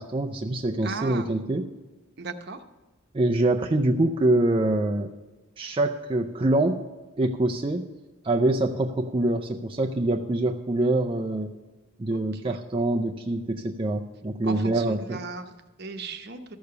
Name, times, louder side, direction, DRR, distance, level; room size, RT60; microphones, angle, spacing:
voice 1, 0.0-1.7 3.1-5.1 5.6-6.8 7.2-7.8 8.2-11.5 12.0-15.2, right 2 dB, 25° right, 2 dB, 0.4 m, -25 dB
voice 2, 0.8-1.3 2.2-2.6 12.1-12.6 14.4-16.6, right 4 dB, 50° right, 7 dB, 0.9 m, -37 dB
13.5 x 6.8 x 6.8 m, 1.2 s
head